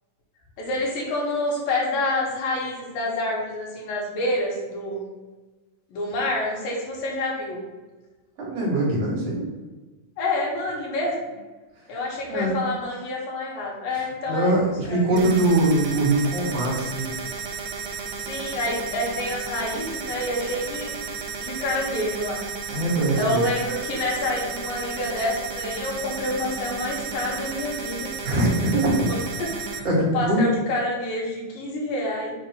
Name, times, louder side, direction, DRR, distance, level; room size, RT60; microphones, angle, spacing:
voice 1, 0.6-5.0 5.9-7.7 10.2-11.3 11.9-14.6 14.9-15.2 18.2-20.9 21.4-22.4 23.2-28.1 29.1-29.9 30.1-32.3, left 1 dB, 85° left, -3 dB, 3.3 m, -28 dB
voice 2, 8.5-9.4 12.3-12.6 13.9-17.1 22.7-23.5 28.2-29.1 29.8-30.5, right 1 dB, 50° right, -4 dB, 2.6 m, -22 dB
sound 1, 15.2-29.8, right 5 dB, 75° right, 1.7 m, -33 dB
6.5 x 2.9 x 5.7 m, 1.3 s
omnidirectional pair, 3.8 m